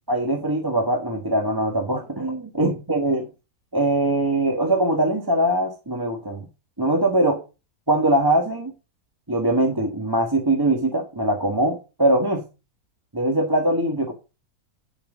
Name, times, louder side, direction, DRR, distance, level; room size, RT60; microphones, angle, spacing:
voice 1, 0.1-3.3 3.7-6.4 6.8-7.4 7.9-8.7 9.3-12.4 13.1-14.1, right 1 dB, 15° right, 1.3 m, -22 dB
8.8 x 7.4 x 4.9 m
omnidirectional pair, 1.6 m